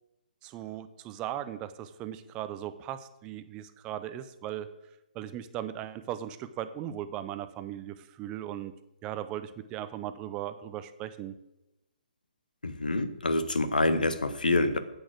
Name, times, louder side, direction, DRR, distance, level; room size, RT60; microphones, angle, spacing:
voice 1, 0.4-4.7 5.1-8.7 9.0-11.3, right 11 dB, 20° right, 12 dB, 0.6 m, -38 dB
voice 2, 12.6-14.8, left 2 dB, 65° left, 11 dB, 1.0 m, -26 dB
9.9 x 8.1 x 6.2 m, 0.93 s
figure-of-eight pair, 130°, 5 cm